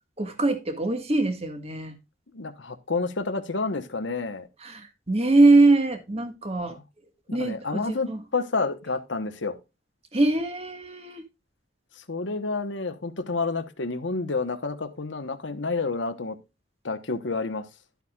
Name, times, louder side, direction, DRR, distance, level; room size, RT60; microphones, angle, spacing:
voice 1, 0.2-2.0 4.6-6.8 7.3-8.2 10.1-11.2, right 2 dB, 30° right, 1.6 m, -22 dB
voice 2, 2.3-4.5 6.7-6.8 7.3-9.6 12.0-16.4 16.8-17.6, left 3 dB, 80° left, 1.1 m, -29 dB
12.0 x 8.2 x 2.4 m
head